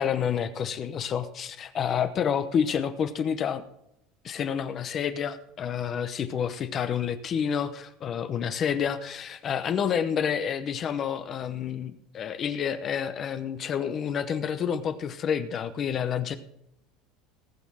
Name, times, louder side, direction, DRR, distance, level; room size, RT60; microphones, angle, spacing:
voice 1, 0.0-3.6 4.2-16.4, left 8 dB, 30° left, 10 dB, 0.9 m, -29 dB
18.0 x 6.4 x 6.2 m, 0.78 s
cardioid pair, 160°, 0 cm